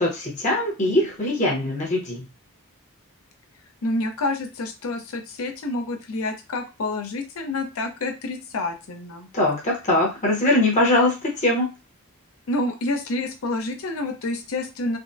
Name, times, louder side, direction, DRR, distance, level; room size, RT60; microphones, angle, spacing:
voice 1, 0.0-2.2 9.3-11.7, left 1 dB, 35° left, -1 dB, 0.8 m, -21 dB
voice 2, 3.8-9.3 12.5-15.0, left 2 dB, 70° left, 5 dB, 0.6 m, -28 dB
3.4 x 2.0 x 2.5 m, 0.27 s
head